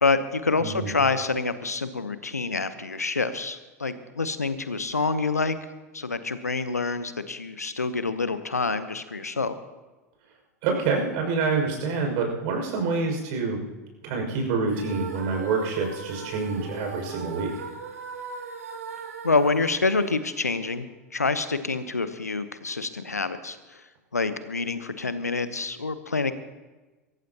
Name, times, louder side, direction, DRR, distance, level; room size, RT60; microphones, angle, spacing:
voice 1, 0.0-5.6 5.9-9.6 19.2-20.8 21.1-23.8 24.1-26.3, left 3 dB, 85° left, 12 dB, 1.0 m, -27 dB
voice 2, 0.6-0.9 10.6-13.6 14.0-17.5, right 4 dB, 55° right, 2 dB, 5.8 m, -27 dB
sound 1, 14.6-20.8, right 5 dB, 75° right, 2.5 m, -39 dB
24.5 x 14.5 x 2.9 m, 1.2 s
figure-of-eight pair, 85°, 8 cm